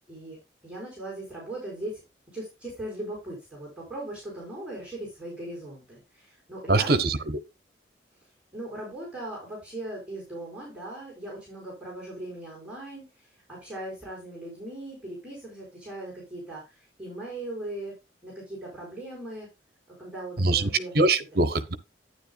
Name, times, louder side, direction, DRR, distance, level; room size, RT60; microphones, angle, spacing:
voice 1, 0.1-0.4 0.6-2.0 2.3-7.0 8.5-17.9 18.2-19.5 20.0-20.9, right 1 dB, 5° right, 5.0 m, -39 dB
voice 2, 6.7-7.4 20.4-20.7 20.9-21.7, right 2 dB, 60° right, 0.9 m, -23 dB
10.5 x 9.6 x 2.3 m
head